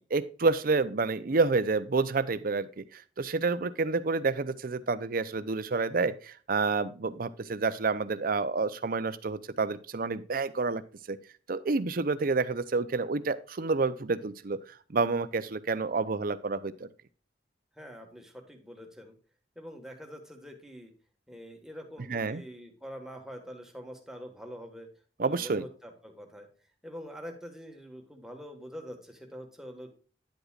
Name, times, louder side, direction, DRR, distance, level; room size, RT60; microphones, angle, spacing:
voice 1, 0.1-10.8 11.1-11.2 11.5-16.9 22.1-22.4 25.2-25.7, right 4 dB, 55° right, 13 dB, 0.6 m, -29 dB
voice 2, 17.7-19.1 19.5-20.9 21.3-24.9 25.2-26.5 26.8-29.9, equal, 5° right, 3 dB, 1.5 m, -45 dB
10.0 x 8.0 x 2.4 m, 0.39 s
head